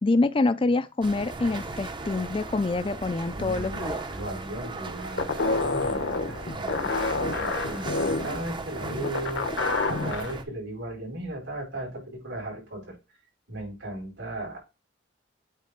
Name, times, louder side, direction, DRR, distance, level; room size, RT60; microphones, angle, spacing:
voice 1, 0.0-4.0, left 3 dB, 25° left, 0.4 m, -26 dB
sound 1, 1.0-10.4, right 3 dB, 25° right, 0.7 m, -37 dB
voice 2, 3.3-12.9 13.5-14.6, right 1 dB, 70° right, 4.8 m, -37 dB
sound 2, 5.2-10.3, left 3 dB, 70° left, 1.0 m, -28 dB
8.4 x 3.4 x 5.1 m
head